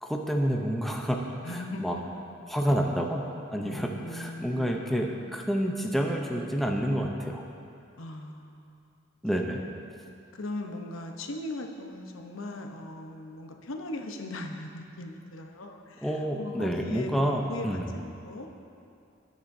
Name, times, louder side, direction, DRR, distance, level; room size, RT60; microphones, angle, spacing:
voice 1, 0.0-2.0 2.5-7.4 9.2-9.6 16.0-17.9, equal, ahead, 0 dB, 0.6 m, -29 dB
voice 2, 1.4-2.1 2.4-2.5 3.6-4.8 8.0-8.8 10.3-17.2 17.5-18.5, left 2 dB, 85° left, 3 dB, 0.9 m, -39 dB
19.0 x 7.2 x 2.7 m, 2.6 s
head